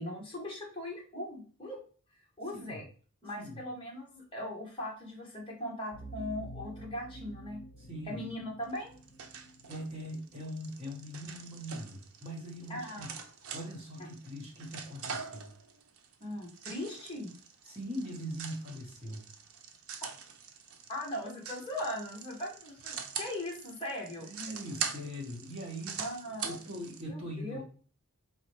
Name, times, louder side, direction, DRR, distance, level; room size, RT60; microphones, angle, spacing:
voice 1, 0.0-1.8 2.4-2.8 3.2-7.6 8.1-8.9 12.7-13.1 16.2-17.3 20.0-20.1 20.9-24.3 26.0-26.6 27.1-27.6, left 1 dB, 25° left, -2 dB, 1.2 m, -39 dB
sound 1, 5.9-10.7, right 2 dB, 70° left, 0.8 m, -49 dB
voice 2, 7.8-8.3 9.7-13.2 13.5-15.5 17.6-19.2 24.2-26.0 26.4-27.6, equal, 25° right, -3 dB, 1.4 m, -41 dB
sound 2, 8.7-27.0, right 6 dB, 75° right, 0.6 m, -43 dB
4.1 x 2.9 x 3.1 m, 0.40 s
head